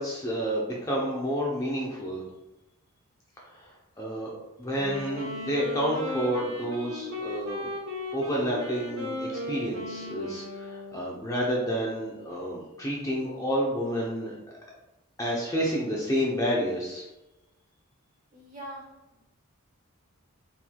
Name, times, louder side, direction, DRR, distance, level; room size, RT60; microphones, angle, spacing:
voice 1, 0.0-2.2 3.5-3.7 4.0-4.3 4.6-7.7 8.1-14.3 15.2-17.0, equal, 15° left, -4 dB, 0.6 m, -29 dB
Wind instrument woodwind instrument, 4.6-11.2, left 1 dB, 75° right, 1.0 m, -36 dB
voice 2, 18.3-19.2, right 1 dB, 35° right, -3 dB, 1.3 m, -43 dB
4.5 x 3.8 x 2.3 m, 0.98 s
head